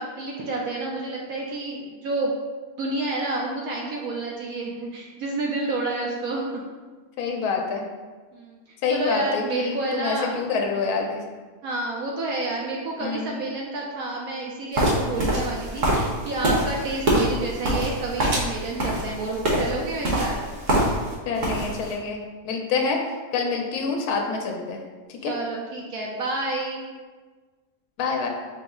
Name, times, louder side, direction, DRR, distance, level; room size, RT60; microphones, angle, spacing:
voice 1, 0.0-2.3 2.8-6.5 8.3-8.6 8.9-10.4 11.6-20.4 25.2-26.8, right 2 dB, 75° right, -2 dB, 1.0 m, -29 dB
voice 2, 7.2-7.8 8.8-11.3 13.0-13.3 21.3-23.0 23.3-24.8 25.1-25.3 28.0-28.3, left 4 dB, 75° left, 1 dB, 1.1 m, -27 dB
sound 1, 14.7-21.1 21.4-21.9, right 1 dB, 55° right, 1.1 m, -24 dB
5.3 x 2.0 x 3.5 m, 1.4 s
omnidirectional pair, 1.7 m